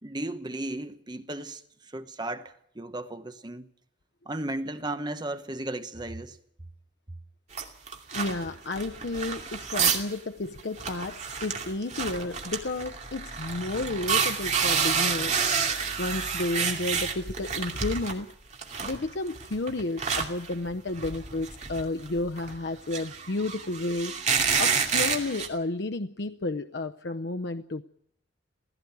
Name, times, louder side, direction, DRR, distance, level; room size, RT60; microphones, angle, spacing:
voice 1, 0.0-3.7 4.2-6.4, right 1 dB, 25° right, 1.1 m, -35 dB
sound 1, 7.5-10.1 10.4-10.5 10.8-18.2 18.5-25.5, right 6 dB, 40° right, 2.6 m, -29 dB
voice 2, 8.1-15.4 16.0-18.3 18.8-24.1 24.6-27.8, left 2 dB, 65° left, 0.7 m, -32 dB
17.0 x 16.0 x 9.5 m
head